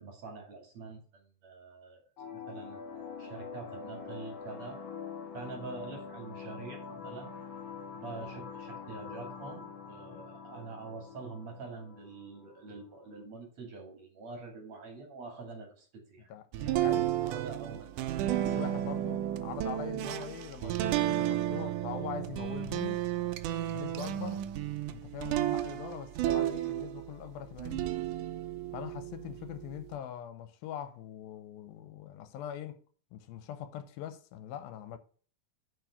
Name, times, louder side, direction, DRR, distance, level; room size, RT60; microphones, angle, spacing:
voice 1, 0.0-4.8 5.3-7.3 7.9-16.3 16.6-18.2 24.1-24.4, right 4 dB, 50° right, 3.4 m, -45 dB
sound 1, 2.2-13.2, left 6 dB, 60° left, 1.2 m, -45 dB
voice 2, 16.3-17.1 18.5-23.0 23.7-24.4 24.9-28.0 28.7-32.8 33.1-35.0, left 10 dB, 85° left, 2.6 m, -42 dB
sound 2, 16.5-27.1 27.6-29.9, right 13 dB, 80° right, 1.9 m, -33 dB
7.8 x 5.4 x 6.9 m
omnidirectional pair, 4.2 m